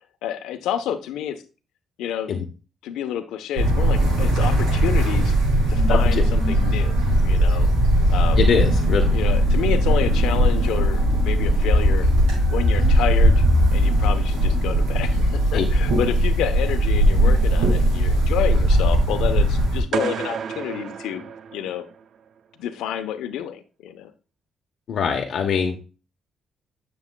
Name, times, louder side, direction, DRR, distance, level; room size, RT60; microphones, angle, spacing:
voice 1, 0.2-1.4 2.0-2.3 2.8-5.3 5.7-7.7 8.1-8.4 9.1-12.1 12.5-13.4 13.7-21.2 21.5-21.8 22.6-24.1, left 10 dB, 90° left, 9 dB, 0.8 m, -29 dB
sound 1, 3.6-19.8, right 1 dB, 90° right, 4.3 m, -19 dB
voice 2, 5.9-6.2 8.4-9.0 15.5-15.6 24.9-25.8, left 6 dB, 65° left, 2 dB, 1.0 m, -23 dB
sound 2, 19.9-22.0, right 7 dB, 60° right, 0.5 m, -30 dB
9.8 x 7.1 x 2.3 m, 0.33 s
cardioid pair, 90°, 0 cm